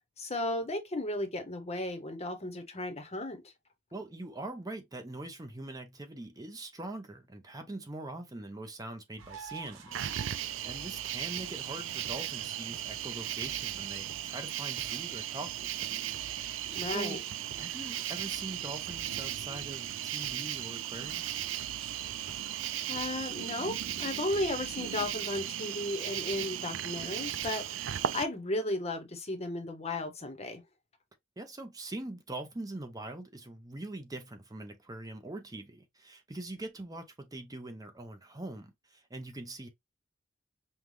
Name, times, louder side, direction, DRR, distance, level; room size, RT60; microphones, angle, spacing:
voice 1, 0.2-3.5 16.6-17.2 22.9-30.6, left 2 dB, 30° left, 0.9 m, -35 dB
voice 2, 3.9-16.0 16.9-17.2 17.6-21.3 31.4-39.7, right 2 dB, 20° right, 0.6 m, -43 dB
sound 1, 9.2-25.5, right 4 dB, 85° right, 1.0 m, -52 dB
Cricket, 9.9-28.2, right 11 dB, 65° right, 0.4 m, -36 dB
5.5 x 2.3 x 3.2 m
head